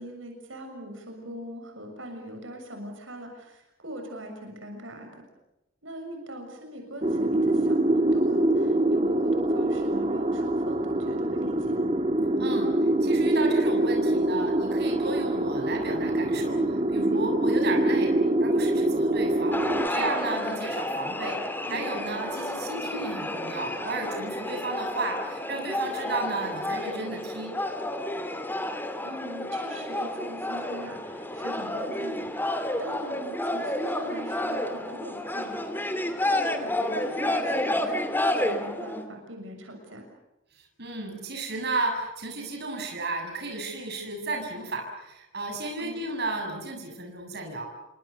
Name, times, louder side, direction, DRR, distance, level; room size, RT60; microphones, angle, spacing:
voice 1, 0.0-5.2 5.8-11.8 17.0-17.4 19.9-20.1 21.7-22.0 29.0-35.7 36.3-38.0 38.4-40.1 45.8-46.0, equal, 80° right, 3 dB, 7.0 m, -41 dB
sound 1, 7.0-19.9, right 1 dB, 30° right, 1.9 m, -24 dB
voice 2, 12.4-12.7 13.0-19.6 19.9-21.4 21.7-27.6 40.8-47.7, right 2 dB, 55° right, 3 dB, 7.3 m, -33 dB
sound 2, 19.5-39.0, left 1 dB, 10° left, 2.7 m, -30 dB
29.5 x 25.5 x 6.8 m, 0.91 s
head